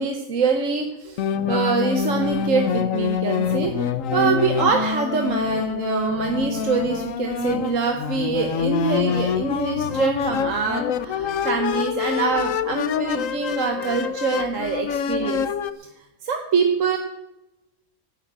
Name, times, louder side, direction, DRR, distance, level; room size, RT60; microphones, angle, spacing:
voice 1, 0.0-15.5 15.7-15.9 16.2-17.0, right 5 dB, 65° right, 4 dB, 1.4 m, -24 dB
sound 1, 1.2-15.7, left 7 dB, 70° left, 1.1 m, -26 dB
12.0 x 9.4 x 8.7 m, 0.98 s
omnidirectional pair, 1.4 m